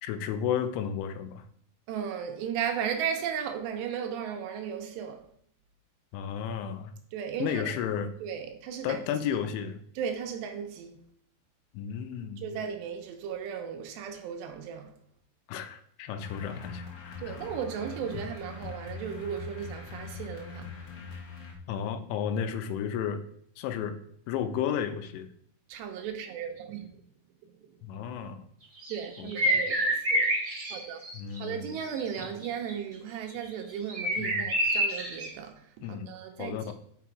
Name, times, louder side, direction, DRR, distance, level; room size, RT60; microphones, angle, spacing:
voice 1, 0.0-1.4 6.1-6.9 7.4-8.1 8.8-9.8 11.7-12.6 15.5-17.3 18.1-18.2 21.7-23.2 23.6-24.0 24.3-25.3 27.8-28.5 29.2-29.6 31.1-31.7 32.2-32.3 34.2-34.5 35.8-36.1 36.4-36.7, left 8 dB, 90° left, 3.0 m, -33 dB
voice 2, 1.9-5.2 7.1-7.7 8.2-9.0 10.0-11.0 12.4-14.9 17.2-20.7 25.7-26.9 27.6-27.7 28.9-30.3 30.7-31.0 31.4-36.7, right 8 dB, 85° right, 2.8 m, -35 dB
sound 1, 16.2-21.5, left 5 dB, 60° left, 2.2 m, -42 dB
sound 2, 28.8-31.4 31.7-32.7 33.9-35.3, right 1 dB, 15° right, 1.6 m, -27 dB
6.0 x 5.9 x 4.7 m
omnidirectional pair, 5.1 m